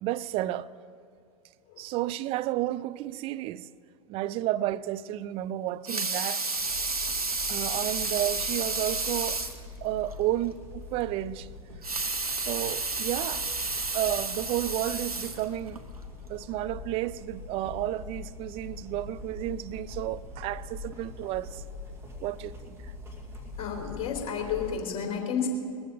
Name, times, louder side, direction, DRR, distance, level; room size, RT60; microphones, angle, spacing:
voice 1, 0.0-0.7 1.8-3.7 4.1-6.4 7.5-9.4 9.8-11.5 12.4-13.4 13.9-15.8 16.3-21.6 22.2-22.9, right 14 dB, 30° right, 0.4 m, -32 dB
Water tap faucet / Sink (filling or washing) / Liquid, 5.7-9.6 10.1-10.2 10.5-10.6 11.7-15.8 16.4-16.5, right 3 dB, 90° right, 1.0 m, -31 dB
sound 1, 6.6-24.7, left 3 dB, 15° right, 2.5 m, -43 dB
voice 2, 23.6-25.5, left 7 dB, 30° left, 3.5 m, -31 dB
20.5 x 14.0 x 3.9 m
figure-of-eight pair, 90°, 19 cm